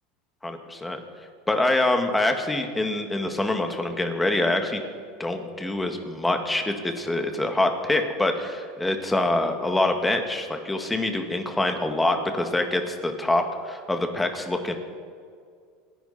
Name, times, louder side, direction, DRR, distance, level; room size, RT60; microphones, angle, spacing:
voice 1, 0.4-1.0 1.5-4.8 5.2-14.7, left 2 dB, 10° left, 5 dB, 2.0 m, -25 dB
27.5 x 11.0 x 4.4 m, 2.1 s
supercardioid pair, 115°, 0 cm